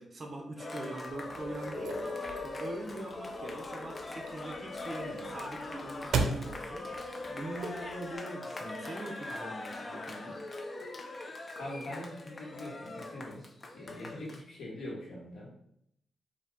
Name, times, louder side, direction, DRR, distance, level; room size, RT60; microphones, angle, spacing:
voice 1, 0.0-2.2 2.4-10.4, right 2 dB, 40° right, 3 dB, 0.8 m, -42 dB
Cheering, 0.6-14.4, left 2 dB, 35° left, 0.5 m, -41 dB
sound 1, 1.1-8.2, right 4 dB, 75° right, 0.5 m, -39 dB
voice 2, 11.6-13.4 13.7-15.5, left 1 dB, 70° left, -3 dB, 1.5 m, -42 dB
4.1 x 2.7 x 3.6 m, 0.73 s
cardioid pair, 95°, 0 cm